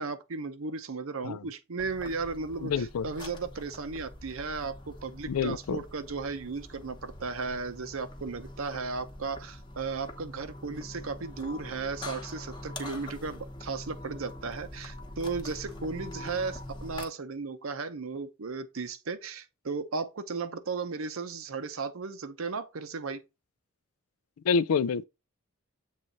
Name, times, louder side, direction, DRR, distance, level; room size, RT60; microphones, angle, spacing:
voice 1, 0.0-23.2, right 4 dB, 70° right, 0.7 m, -35 dB
sound 1, 1.8-17.1, left 1 dB, 20° left, 0.9 m, -44 dB
voice 2, 2.6-3.1 5.3-5.8 24.4-25.0, left 5 dB, 85° left, 0.4 m, -27 dB
7.4 x 3.2 x 4.0 m
head